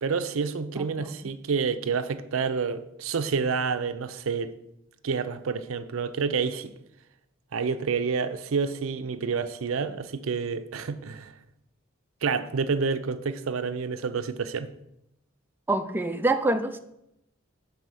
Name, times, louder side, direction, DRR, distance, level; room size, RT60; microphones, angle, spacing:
voice 1, 0.0-4.5 5.0-6.7 7.5-11.3 12.2-14.7, right 5 dB, 70° right, 0.5 m, -28 dB
voice 2, 0.8-1.1 15.7-16.8, right 2 dB, 10° right, 0.4 m, -26 dB
6.2 x 4.1 x 5.4 m
head